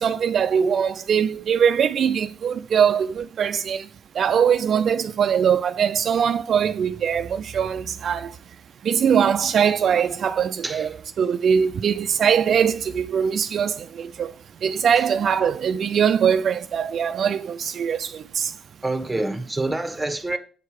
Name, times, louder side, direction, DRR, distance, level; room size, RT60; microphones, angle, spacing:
voice 1, 0.0-3.8 4.2-8.3 8.9-14.3 14.6-18.5, right 7 dB, 60° right, 0.4 m, -22 dB
voice 2, 18.8-20.4, right 2 dB, 10° right, 1.2 m, -26 dB
8.1 x 4.5 x 4.8 m
cardioid pair, 90°, 0 cm